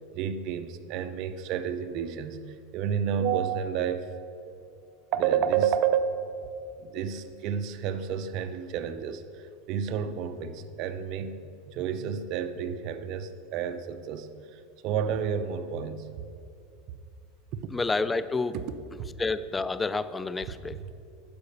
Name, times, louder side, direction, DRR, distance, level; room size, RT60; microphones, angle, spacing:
voice 1, 0.1-4.1 5.1-6.3 6.8-16.1 17.5-17.6 19.0-19.1 20.7-20.9, right 8 dB, 50° right, 10 dB, 0.6 m, -30 dB
voice 2, 17.7-18.5 19.2-20.8, left 3 dB, 10° left, 15 dB, 0.3 m, -29 dB
12.0 x 4.9 x 6.7 m, 2.5 s
supercardioid pair, 135°, 0 cm